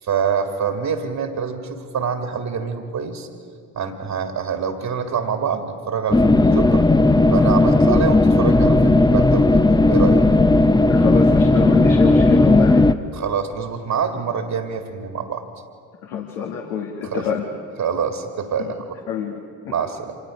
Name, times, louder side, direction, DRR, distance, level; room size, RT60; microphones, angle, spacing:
voice 1, 0.0-3.3 3.7-6.8 7.3-10.2 13.1-15.4 17.0-17.3 17.8-18.9 19.3-19.4 19.7-20.1, right 6 dB, 50° right, 5 dB, 2.2 m, -25 dB
sound 1, 6.1-12.9, left 2 dB, 10° left, 0.8 m, -15 dB
voice 2, 10.9-12.8 16.0-17.4 19.1-19.4, left 7 dB, 80° left, 0 dB, 1.9 m, -26 dB
26.5 x 19.5 x 5.1 m, 2.2 s
hypercardioid pair, 50°, 40 cm